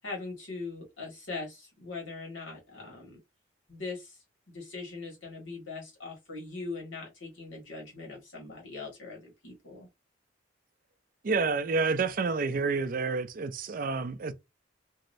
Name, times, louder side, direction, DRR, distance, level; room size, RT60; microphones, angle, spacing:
voice 1, 0.0-3.2 3.7-4.2 4.5-9.9, left 3 dB, 90° left, 1.8 m, -41 dB
voice 2, 11.2-14.3, right 4 dB, 45° right, 0.4 m, -29 dB
3.0 x 2.7 x 2.6 m
head